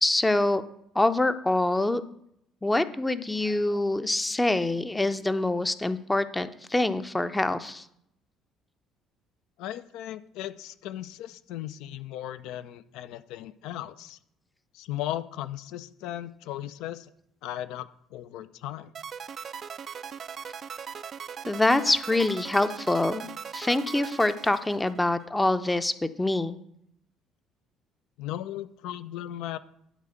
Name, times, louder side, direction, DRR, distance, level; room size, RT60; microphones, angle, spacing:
voice 1, 0.0-0.6 0.9-2.0 2.6-7.8 21.5-23.3 23.5-26.6, left 2 dB, 10° left, 11 dB, 0.6 m, -25 dB
voice 2, 9.6-14.2 14.7-17.1 17.4-18.9 28.2-29.6, left 13 dB, 60° left, 13 dB, 0.4 m, -37 dB
sound 1, 18.9-25.2, right 7 dB, 45° right, 0.3 m, -39 dB
11.5 x 4.1 x 6.5 m, 0.75 s
figure-of-eight pair, 50°, 0 cm